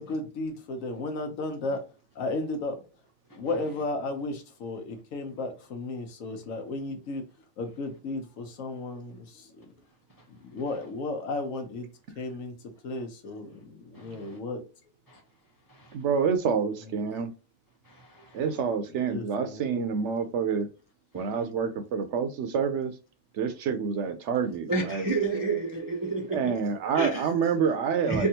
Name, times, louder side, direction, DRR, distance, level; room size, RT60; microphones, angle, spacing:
voice 1, 0.0-1.8 2.1-2.8 3.3-7.2 7.6-9.7 10.3-11.9 12.2-14.6 16.8-17.0 18.5-19.9, left 2 dB, 85° left, 1.2 m, -34 dB
voice 2, 13.9-14.4 15.1-15.2 15.7-15.9 17.8-18.4 21.1-21.3 24.7-26.5 26.9-27.3 28.1-28.3, right 3 dB, 30° right, 0.3 m, -30 dB
voice 3, 15.9-17.3 18.3-20.7 21.1-22.9 23.3-25.1 26.3-28.3, right 6 dB, 70° right, 0.8 m, -27 dB
3.5 x 2.3 x 2.8 m
omnidirectional pair, 1.3 m